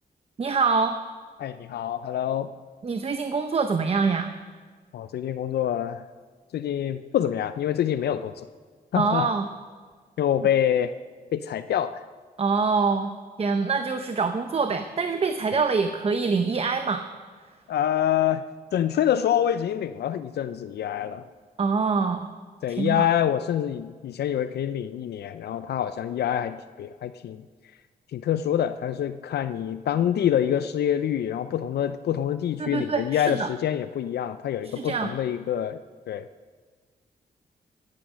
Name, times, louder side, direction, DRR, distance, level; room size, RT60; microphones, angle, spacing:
voice 1, 0.4-1.0 2.8-4.3 9.0-9.4 12.4-13.1 13.4-17.0 21.6-22.3 22.7-23.1 32.6-33.5 34.6-35.1, right 4 dB, 35° right, 8 dB, 0.7 m, -25 dB
voice 2, 1.4-2.5 4.9-6.0 6.5-8.5 8.9-9.3 10.2-10.9 11.3-12.0 17.7-18.4 18.7-21.3 22.6-27.4 28.1-35.8 36.1-36.3, left 10 dB, 80° left, 12 dB, 0.4 m, -26 dB
14.5 x 9.6 x 6.1 m, 1.5 s
cardioid pair, 105°, 17 cm